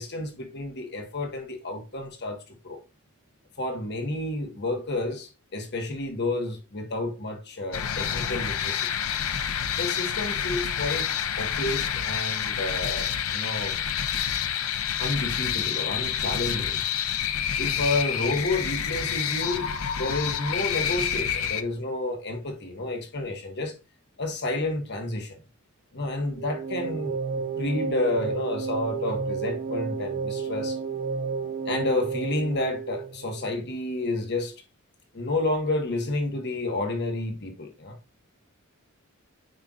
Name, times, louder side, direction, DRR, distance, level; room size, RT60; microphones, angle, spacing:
voice 1, 0.0-2.8 3.6-8.9 9.7-11.1 11.4-13.8 15.0-16.8 17.6-23.7 24.2-25.4 25.9-30.8 31.7-34.5 35.1-38.0, left 2 dB, 50° left, 1.3 m, -30 dB
sound 1, 7.7-21.6, left 8 dB, 80° left, 0.6 m, -28 dB
sound 2, 26.3-33.5, right 5 dB, 35° right, 0.5 m, -31 dB
7.9 x 5.4 x 2.4 m
head